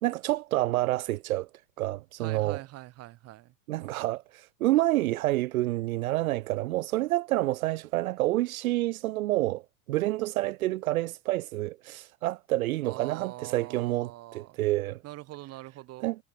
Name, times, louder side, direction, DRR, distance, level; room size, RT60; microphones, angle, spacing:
voice 1, 0.0-1.5 1.8-2.6 3.7-9.6 9.9-15.0 16.0-16.2, right 17 dB, 70° right, 1.0 m, -28 dB
voice 2, 2.2-3.5 12.8-14.6 15.0-16.1, right 17 dB, 35° right, 2.9 m, -44 dB
supercardioid pair, 135°, 44 cm